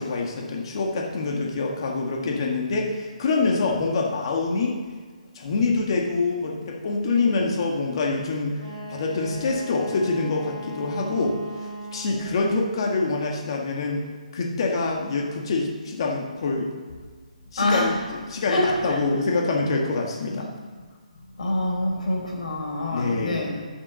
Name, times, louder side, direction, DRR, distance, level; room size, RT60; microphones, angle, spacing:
voice 1, 0.0-4.8 5.3-8.6 8.9-11.4 11.9-14.0 14.3-16.7 17.5-17.9 18.3-20.5 22.9-23.4, left 3 dB, 40° left, 0 dB, 1.7 m, -25 dB
Wind instrument woodwind instrument, 8.6-12.3, right 1 dB, 40° right, 4.2 m, -38 dB
voice 2, 17.6-17.9 18.5-19.0 21.4-23.6, left 1 dB, 70° left, 0 dB, 4.2 m, -26 dB
11.5 x 7.4 x 6.9 m, 1.5 s
hypercardioid pair, 170°, 4 cm